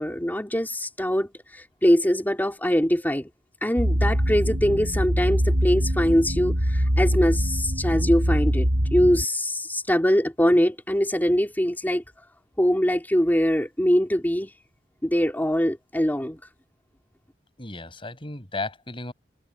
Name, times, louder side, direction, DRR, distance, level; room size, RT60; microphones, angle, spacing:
voice 1, 0.0-3.3 3.6-12.0 12.6-14.5 15.0-16.4, equal, 10° left, 3.5 m, -23 dB
sound 1, 3.8-9.2, equal, 75° right, 5.3 m, -23 dB
voice 2, 17.6-19.1, left 2 dB, 30° left, 7.4 m, -34 dB
head